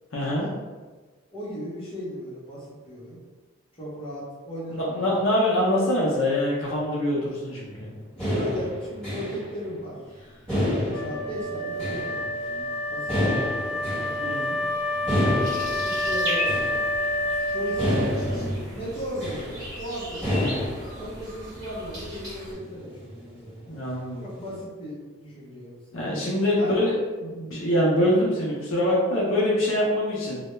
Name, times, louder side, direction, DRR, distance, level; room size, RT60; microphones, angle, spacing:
voice 1, 0.1-0.5 4.8-7.9 14.2-14.6 23.7-24.2 25.9-30.4, left 1 dB, 65° left, -5 dB, 0.5 m, -24 dB
voice 2, 1.3-3.2 3.8-5.1 8.2-10.0 10.7-14.8 15.8-16.6 17.5-20.6 21.0-23.6 24.2-26.2 26.6-26.8, equal, 25° left, -7 dB, 0.7 m, -36 dB
sound 1, 7.7-9.5 9.8-9.9 10.5-12.5 13.0-14.4 14.9-16.9 17.2-17.3 17.6-19.7 20.2-21.2 21.5-21.6 22.1-22.2 22.5-23.6, equal, 5° left, 1.1 m, -29 dB
Wind instrument woodwind instrument, 10.9-18.5, left 1 dB, 80° left, 0.9 m, -28 dB
sound 2, 15.4-22.5, equal, 55° right, 1.0 m, -37 dB
2.2 x 2.1 x 2.9 m, 1.3 s
head